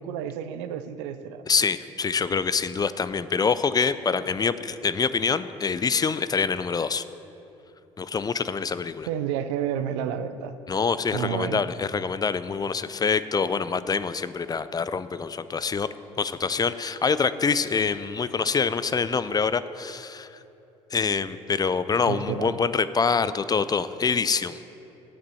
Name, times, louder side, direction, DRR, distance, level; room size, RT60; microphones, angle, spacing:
voice 1, 0.0-1.4 9.1-10.5 11.1-11.6 22.1-22.5, right 9 dB, 80° right, 11 dB, 0.5 m, -30 dB
voice 2, 1.5-7.0 8.0-9.1 10.7-15.9 16.2-20.4 20.9-24.6, left 5 dB, 25° left, 14 dB, 0.4 m, -25 dB
8.4 x 7.6 x 6.9 m, 3.0 s
hypercardioid pair, 65°, 15 cm